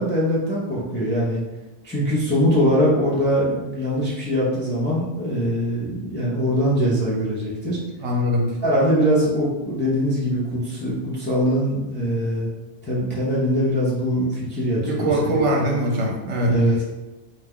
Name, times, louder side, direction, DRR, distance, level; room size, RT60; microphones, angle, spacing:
voice 1, 0.0-1.4 1.8-7.8 8.6-12.5 12.9-15.3 16.5-16.8, equal, 15° left, -7 dB, 0.4 m, -22 dB
voice 2, 8.0-8.6 14.9-16.6, equal, 70° right, 0 dB, 0.9 m, -22 dB
2.7 x 2.2 x 3.5 m, 1.1 s
omnidirectional pair, 1.3 m